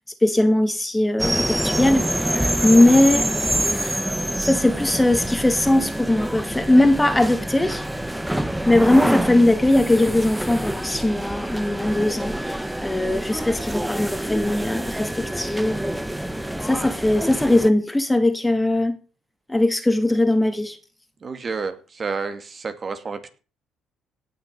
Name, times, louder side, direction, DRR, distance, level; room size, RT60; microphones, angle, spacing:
voice 1, 0.2-2.3 2.6-3.3 4.5-7.8 8.7-16.0 16.6-19.0 19.5-20.8, left 1 dB, 10° left, 2.2 m, -19 dB
sound 1, 1.2-17.7, right 1 dB, 5° right, 1.3 m, -26 dB
voice 2, 21.2-23.3, right 4 dB, 40° right, 2.3 m, -30 dB
17.5 x 6.7 x 6.8 m
supercardioid pair, 75°, 0 cm